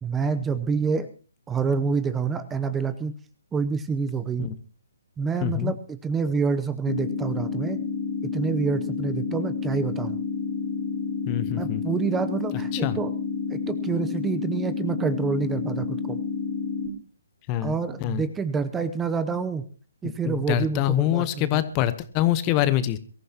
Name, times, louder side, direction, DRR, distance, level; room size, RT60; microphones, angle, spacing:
voice 1, 0.0-1.1 1.5-3.1 3.5-4.5 5.2-7.8 8.3-10.2 11.6-13.1 13.5-16.2 17.6-19.6 20.0-21.6, right 5 dB, 10° right, 12 dB, 0.7 m, -27 dB
voice 2, 5.4-5.7 11.3-11.8 12.7-13.0 17.5-18.2 20.2-23.0, left 13 dB, 25° left, 14 dB, 1.0 m, -25 dB
sound 1, 6.9-16.9, left 5 dB, 90° left, 3.4 m, -30 dB
23.0 x 14.5 x 2.9 m, 0.38 s
figure-of-eight pair, 140°, 0 cm